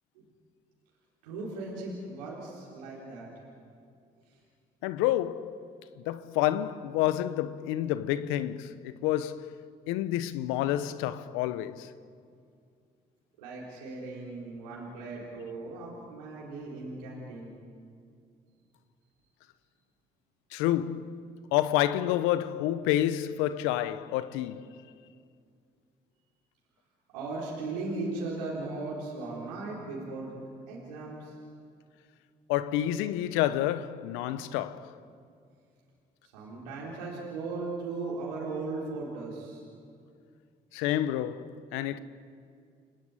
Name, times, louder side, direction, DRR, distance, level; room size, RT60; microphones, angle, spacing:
voice 1, 1.2-3.3 13.4-17.5 27.1-30.4 30.7-31.3 36.3-39.6, right 3 dB, 90° right, 4.0 m, -37 dB
voice 2, 4.8-5.6 6.0-9.5 9.9-11.9 20.5-21.2 21.5-24.8 32.5-34.9 40.7-42.0, left 13 dB, 80° left, 0.9 m, -29 dB
29.5 x 18.5 x 9.6 m
hypercardioid pair, 45°, 21 cm